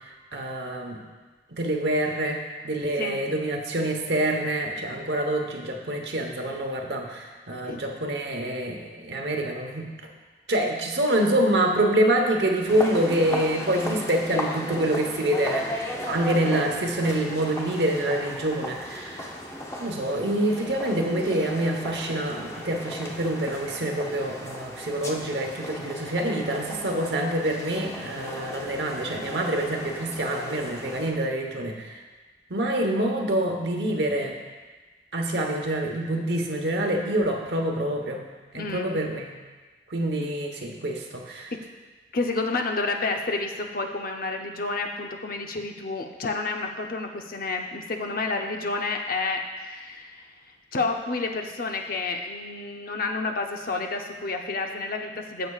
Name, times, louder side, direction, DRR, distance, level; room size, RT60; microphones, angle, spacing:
voice 1, 0.3-1.0 1.5-9.9 10.5-19.3 19.8-32.0 32.5-34.4 35.1-38.2 38.5-39.3 39.9-41.5, right 1 dB, 65° right, 2 dB, 1.1 m, -26 dB
sound 1, 12.7-31.1, left 1 dB, 15° left, 0.8 m, -36 dB
voice 2, 38.5-39.0 41.5-41.6 42.1-50.2 50.7-55.5, left 3 dB, 55° left, 3 dB, 0.7 m, -30 dB
15.0 x 6.6 x 2.4 m, 1.3 s
head